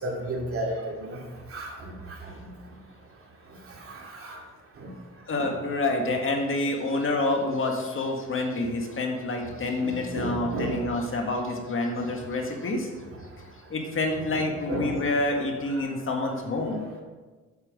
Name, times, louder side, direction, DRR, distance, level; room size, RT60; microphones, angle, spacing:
voice 1, 0.0-1.2 1.5-2.5 3.8-4.4 4.8-4.9 5.4-5.5 9.8-10.9 14.3-15.1, right 1 dB, 45° right, -1 dB, 2.4 m, -33 dB
voice 2, 5.3-12.9 13.7-16.8, left 2 dB, 45° left, 2 dB, 1.8 m, -28 dB
8.4 x 7.4 x 5.3 m, 1.3 s
cardioid pair, 90°, 30 cm